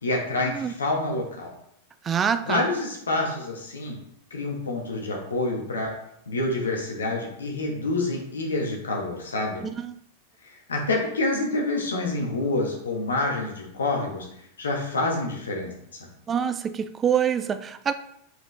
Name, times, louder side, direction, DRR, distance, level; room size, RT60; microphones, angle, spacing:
voice 1, 0.0-1.5 2.4-4.0 4.3-5.9 6.3-9.6 10.4-14.2 14.6-15.7, left 2 dB, 70° left, 1.7 m, -27 dB
voice 2, 2.0-2.6 9.6-9.9 16.3-17.9, right 8 dB, 25° right, 0.5 m, -25 dB
6.4 x 4.9 x 3.4 m
figure-of-eight pair, 90°, 0 cm